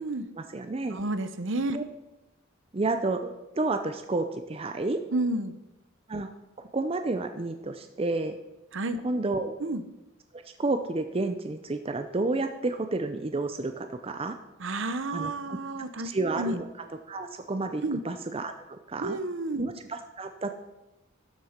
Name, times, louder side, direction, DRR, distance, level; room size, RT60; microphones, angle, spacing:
voice 1, 0.4-1.0 1.7-1.8 2.7-5.0 6.1-6.3 6.6-8.4 9.0-9.5 10.3-14.4 15.1-15.6 16.0-16.7 17.1-19.2 19.6-20.5, right 2 dB, 25° right, 7 dB, 0.5 m, -30 dB
voice 2, 0.9-1.8 5.1-5.6 8.7-9.0 9.6-9.8 14.6-16.1 16.4-16.6 17.8-18.0 19.0-19.6, right 2 dB, 60° right, 11 dB, 0.8 m, -30 dB
12.0 x 7.4 x 5.1 m, 0.97 s
head